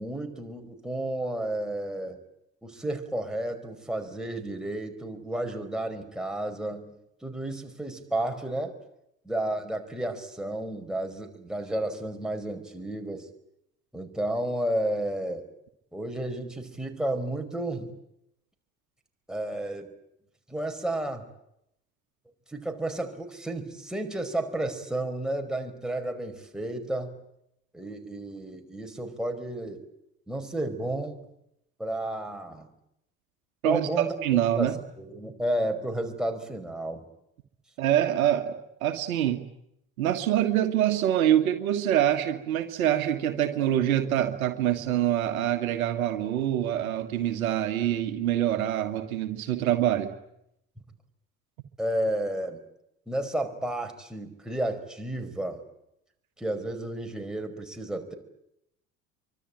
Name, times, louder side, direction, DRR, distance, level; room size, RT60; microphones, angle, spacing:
voice 1, 0.0-2.2 2.6-6.9 7.2-8.7 9.2-13.3 13.9-15.5 15.9-17.9 19.3-19.9 20.5-21.3 22.5-27.2 27.7-29.8 30.3-31.2 31.8-32.7 33.6-37.0 51.8-52.6 53.1-55.6 56.4-58.1, right 1 dB, ahead, 3 dB, 5.0 m, -32 dB
voice 2, 33.6-34.8 37.8-39.4 40.0-50.1, right 11 dB, 70° right, 7 dB, 1.7 m, -25 dB
25.5 x 24.0 x 9.1 m, 0.81 s
figure-of-eight pair, 60°, 43 cm